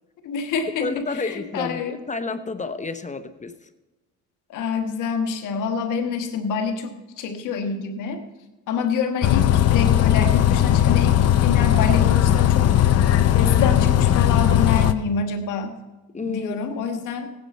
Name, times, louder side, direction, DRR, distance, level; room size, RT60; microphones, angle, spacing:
voice 1, 0.2-2.0 4.5-8.2 8.7-12.7 13.3-15.7 16.2-17.3, left 5 dB, 85° left, 7 dB, 1.4 m, -27 dB
voice 2, 0.8-3.5 16.1-16.6, left 3 dB, 25° left, 10 dB, 0.8 m, -30 dB
Bus, 9.2-14.9, left 11 dB, 55° left, 0.7 m, -18 dB
17.0 x 9.4 x 4.4 m, 1.1 s
cardioid pair, 90°, 30 cm